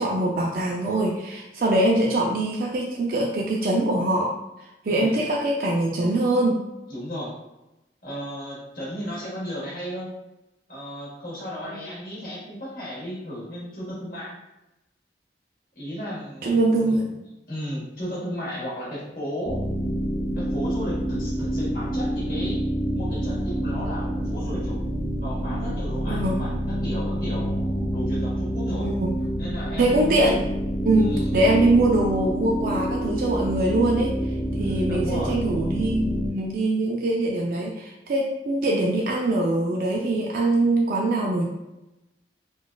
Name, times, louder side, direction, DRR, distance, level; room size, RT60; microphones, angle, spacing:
voice 1, 0.0-4.3 4.9-6.6 16.4-17.1 26.1-26.4 28.8-29.1 29.8-30.4 30.8-34.2 34.6-41.5, right 2 dB, 50° right, -1 dB, 0.4 m, -23 dB
voice 2, 4.8-5.2 6.9-7.3 8.0-10.1 10.7-14.3 15.7-17.1 17.5-19.6 20.3-22.6 22.9-24.8 25.2-28.9 29.4-30.3 30.9-31.3 34.5-35.4, equal, 50° left, -6 dB, 1.4 m, -34 dB
sound 1, 19.4-36.3, equal, 15° left, 0.8 m, -27 dB
3.8 x 2.3 x 2.3 m, 0.96 s
head